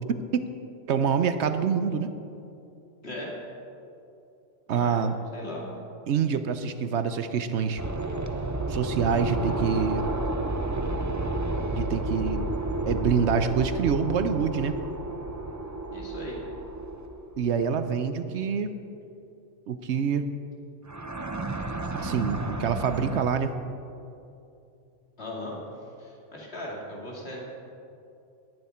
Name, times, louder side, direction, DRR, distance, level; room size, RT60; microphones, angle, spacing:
voice 1, 0.1-0.5 0.9-2.1 4.7-5.2 6.1-7.8 8.7-10.1 11.7-12.5 12.9-14.8 17.4-18.8 19.7-20.3 21.9-23.5, right 6 dB, 70° right, 10 dB, 1.0 m, -26 dB
voice 2, 3.0-3.4 4.7-5.0 5.3-5.8 15.9-16.4 25.2-25.6 26.0-27.4, left 1 dB, 60° left, -3 dB, 2.9 m, -38 dB
sound 1, 7.8-17.7 20.9-23.2, right 2 dB, 20° right, 0.5 m, -31 dB
18.5 x 11.0 x 4.3 m, 2.7 s
omnidirectional pair, 1.2 m